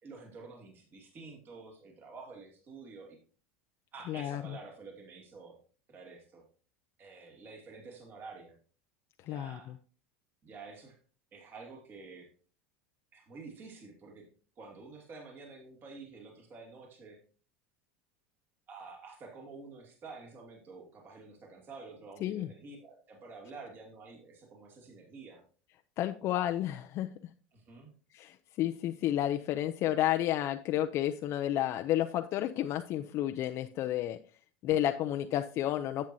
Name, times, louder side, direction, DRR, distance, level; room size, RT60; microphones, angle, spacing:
voice 1, 0.0-3.2 3.9-5.6 5.9-6.4 7.0-8.5 9.2-9.8 10.4-11.0 11.3-12.3 13.1-14.2 14.6-17.2 18.7-25.4 27.5-27.9, right 4 dB, 35° right, 0 dB, 2.4 m, -49 dB
voice 2, 4.1-4.6 9.2-9.6 22.2-22.5 26.0-27.1 28.1-34.2 34.6-36.0, left 12 dB, 45° left, 7 dB, 0.5 m, -31 dB
11.0 x 7.6 x 2.7 m, 0.39 s
supercardioid pair, 120°, 6 cm